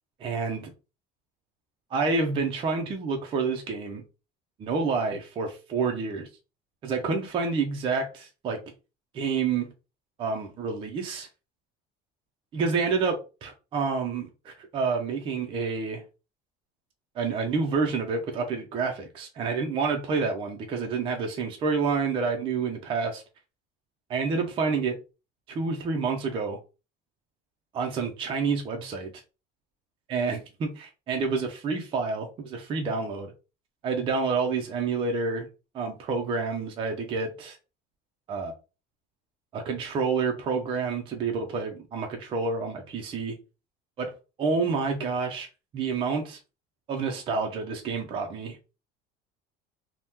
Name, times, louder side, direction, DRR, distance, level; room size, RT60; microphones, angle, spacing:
voice 1, 0.2-0.7 1.9-4.0 4.6-6.3 6.8-8.6 9.1-9.7 10.2-11.3 12.5-16.0 17.2-23.2 24.1-24.9 25.5-26.6 27.7-29.2 30.1-33.3 33.8-35.5 35.7-37.6 38.3-38.5 39.5-43.4 44.0-44.1 44.4-45.5 45.7-46.4 46.9-48.8, right 4 dB, 25° right, 0.4 m, -28 dB
2.8 x 2.1 x 3.4 m
cardioid pair, 155°, 20 cm